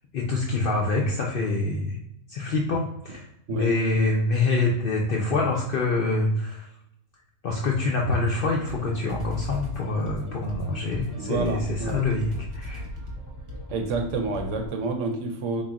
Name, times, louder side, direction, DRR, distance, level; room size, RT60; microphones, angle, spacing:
voice 1, 0.1-2.0 2.3-6.7 7.4-12.9, left 3 dB, 65° left, -1 dB, 0.5 m, -26 dB
sound 1, 8.7-14.7, left 1 dB, 30° right, 0.7 m, -37 dB
voice 2, 11.2-12.0 13.7-15.6, right 3 dB, 70° right, 3 dB, 0.9 m, -28 dB
4.0 x 2.1 x 3.5 m, 0.79 s
omnidirectional pair, 1.4 m